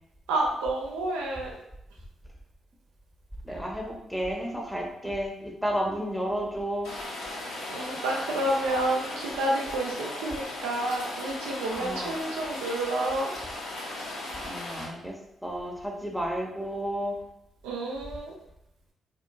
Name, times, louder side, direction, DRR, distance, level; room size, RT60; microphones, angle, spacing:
voice 1, 0.3-1.6 7.7-13.3 17.6-18.3, right 1 dB, 85° right, -1 dB, 0.4 m, -29 dB
voice 2, 3.4-6.9 11.7-12.2 14.4-15.1 15.4-17.2, equal, 5° left, 1 dB, 0.7 m, -32 dB
Rain, 6.8-14.8, left 1 dB, 85° left, 0.6 m, -37 dB
2.8 x 2.3 x 2.3 m, 0.82 s
hypercardioid pair, 40°, 0 cm